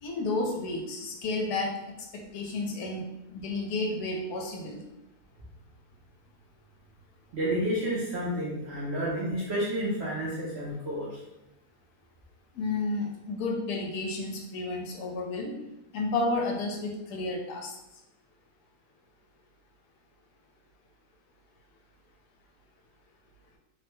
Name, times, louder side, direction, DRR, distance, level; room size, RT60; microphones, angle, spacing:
voice 1, 0.0-1.7 2.3-4.8 12.5-15.5 15.9-17.7, left 2 dB, 75° left, 0 dB, 1.1 m, -31 dB
voice 2, 7.3-11.2, equal, 60° right, -6 dB, 0.7 m, -30 dB
3.3 x 2.1 x 3.0 m, 0.90 s
omnidirectional pair, 1.7 m